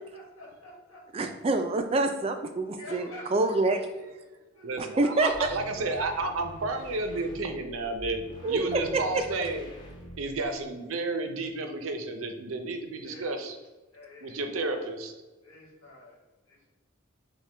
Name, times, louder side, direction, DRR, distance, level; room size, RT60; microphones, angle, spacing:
voice 1, 0.0-1.3 2.8-3.3 3.6-4.9 8.5-9.3 13.0-13.4 13.9-14.9 15.4-16.2 16.5-16.7, left 1 dB, 85° left, -3 dB, 1.5 m, -49 dB
voice 2, 1.1-3.8 4.8-5.5 8.4-9.2, right 2 dB, 30° right, 7 dB, 0.3 m, -27 dB
voice 3, 4.6-9.7 10.2-13.6 14.2-15.1, right 2 dB, 90° right, 6 dB, 0.6 m, -32 dB
sound 1, 5.3-10.6, equal, 20° left, 0.8 m, -46 dB
5.7 x 2.2 x 3.3 m, 1.2 s
head